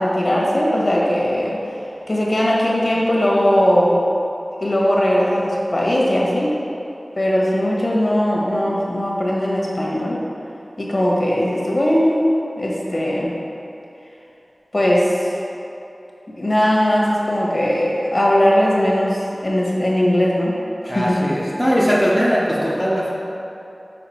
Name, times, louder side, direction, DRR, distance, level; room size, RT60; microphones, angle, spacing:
voice 1, 0.0-1.6 2.1-4.0 4.6-6.5 7.1-10.2 10.8-12.2 12.6-13.3 14.7-15.2 16.4-20.5 20.8-21.4, equal, 45° left, -4 dB, 1.5 m, -19 dB
voice 2, 20.9-23.1, equal, 5° left, -6 dB, 0.9 m, -19 dB
6.7 x 4.0 x 5.8 m, 2.9 s
wide cardioid pair, 65°, 0 cm